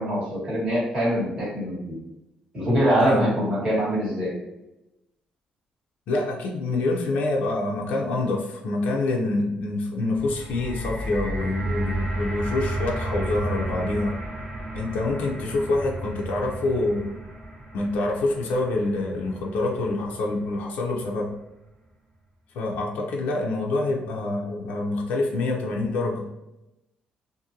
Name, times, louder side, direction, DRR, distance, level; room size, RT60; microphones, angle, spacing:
voice 1, 0.0-2.0 2.5-4.3, equal, 30° right, -7 dB, 1.5 m, -23 dB
voice 2, 6.1-14.1 14.7-17.2 17.7-21.3 22.5-26.2, left 2 dB, 80° left, 0 dB, 0.5 m, -26 dB
sound 1, 10.1-20.3 21.1-21.2, right 1 dB, 5° right, 1.1 m, -32 dB
2.5 x 2.5 x 2.7 m, 0.92 s
cardioid pair, 170°, 3 cm